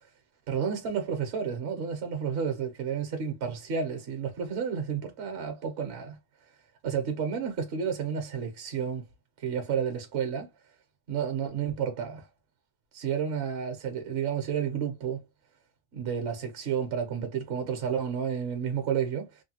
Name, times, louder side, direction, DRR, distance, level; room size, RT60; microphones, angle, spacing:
voice 1, 0.5-6.2 6.8-9.0 9.4-10.5 11.1-12.3 12.9-15.2 15.9-19.4, right 7 dB, 55° right, 1.1 m, -31 dB
3.2 x 2.3 x 2.8 m
omnidirectional pair, 1.4 m